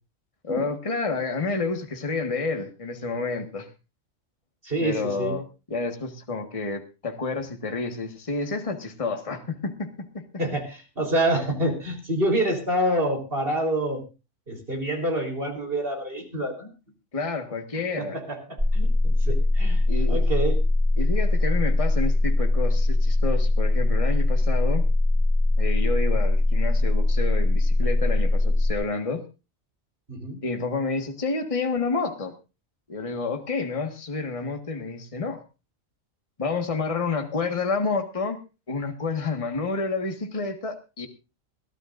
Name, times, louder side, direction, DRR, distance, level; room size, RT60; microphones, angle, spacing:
voice 1, 0.4-3.7 4.8-10.2 17.1-18.2 19.9-20.2 21.0-24.9 25.6-29.2 30.4-32.3 32.9-35.4 36.4-38.4 38.7-41.1, left 3 dB, 25° left, 5 dB, 1.6 m, -29 dB
voice 2, 4.6-5.4 10.4-14.0 14.5-16.7 18.0-20.6 30.1-30.4, right 1 dB, 45° right, 2 dB, 4.1 m, -27 dB
sound 1, 18.6-28.7, left 2 dB, 15° right, 3.0 m, -21 dB
21.5 x 15.0 x 2.5 m, 0.31 s
omnidirectional pair, 1.4 m